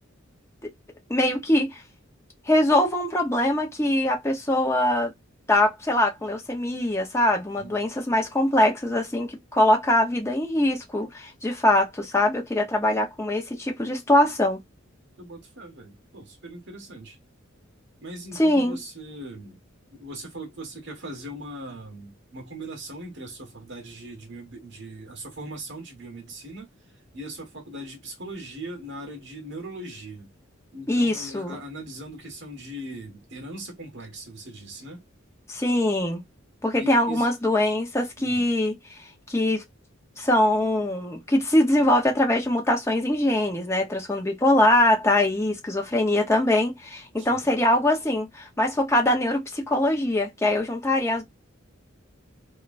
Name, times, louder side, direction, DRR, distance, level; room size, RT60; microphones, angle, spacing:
voice 1, 1.1-1.8 2.5-5.1 5.5-14.6 18.4-18.8 30.9-31.6 35.5-36.2 36.6-38.7 39.3-39.6 40.2-51.2, left 1 dB, 15° left, 1.0 m, -22 dB
voice 2, 15.2-17.2 18.0-19.6 19.9-26.7 27.1-30.3 30.7-35.0 36.8-37.3 38.2-38.5 47.2-47.5, right 1 dB, 60° right, 1.6 m, -40 dB
3.6 x 3.4 x 2.6 m
head